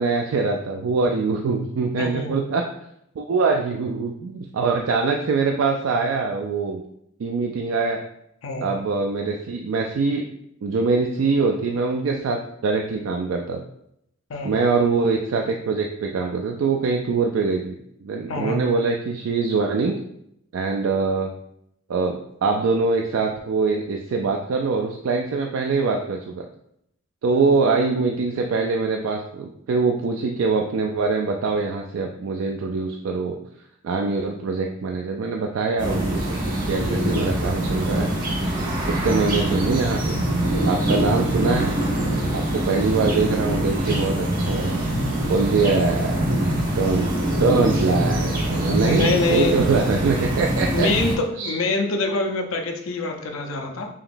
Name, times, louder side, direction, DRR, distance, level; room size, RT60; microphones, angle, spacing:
voice 1, 0.0-2.6 3.2-6.8 7.2-8.0 8.6-10.2 10.6-13.6 14.4-19.9 20.5-21.3 21.9-26.4 27.2-33.4 33.8-36.4 36.7-38.1 39.0-40.2 40.7-41.7 42.3-44.8 45.3-46.2 46.8-47.1 47.4-50.9 51.4-51.5, right 4 dB, 85° right, 2 dB, 0.4 m, -23 dB
voice 2, 2.0-2.3 8.4-8.7 14.3-14.6 18.3-18.7 27.3-27.4 48.8-49.6 50.7-53.9, left 3 dB, 85° left, 3 dB, 0.6 m, -25 dB
sound 1, 35.8-51.1, right 1 dB, 45° right, 1.1 m, -24 dB
4.9 x 2.9 x 2.5 m, 0.76 s
head